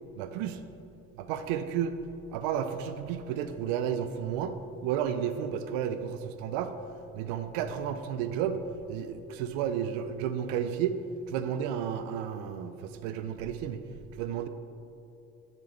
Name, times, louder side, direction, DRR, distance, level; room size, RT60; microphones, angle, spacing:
voice 1, 0.2-0.6 1.2-2.0 2.3-4.6 4.8-6.7 7.1-8.6 8.9-11.0 11.3-13.8 14.2-14.5, right 9 dB, 60° right, 10 dB, 0.5 m, -32 dB
8.2 x 6.8 x 3.3 m, 2.9 s
figure-of-eight pair, 60°, 43 cm